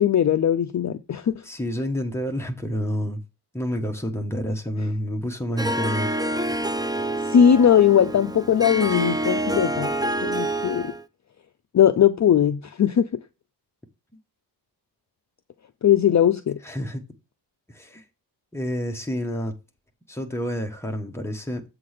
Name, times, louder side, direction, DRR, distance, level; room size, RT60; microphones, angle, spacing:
voice 1, 0.0-1.3 7.2-10.0 10.2-10.9 11.7-13.1 15.8-16.6, left 9 dB, 45° left, 0.5 m, -19 dB
voice 2, 1.4-3.2 3.5-6.2 16.6-17.1 17.7-18.0 18.5-19.6 20.1-21.6, equal, 5° left, 1.2 m, -29 dB
Harp, 5.6-11.0, right 1 dB, 10° right, 0.4 m, -27 dB
7.6 x 3.8 x 6.4 m
wide cardioid pair, 150°, 41 cm